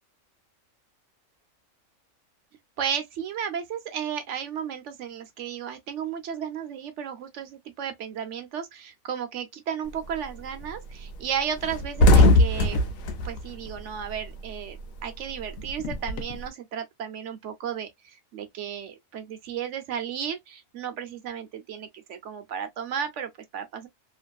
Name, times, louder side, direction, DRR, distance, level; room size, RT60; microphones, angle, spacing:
voice 1, 2.8-12.9 13.2-14.8 15.0-17.9 18.3-23.9, right 8 dB, 70° right, 0.9 m, -34 dB
sound 1, 9.9-10.2 10.6-10.8 11.0-11.2 11.5-14.5 14.8-16.4, left 2 dB, 80° left, 1.1 m, -21 dB
2.9 x 2.5 x 2.2 m
omnidirectional pair, 1.4 m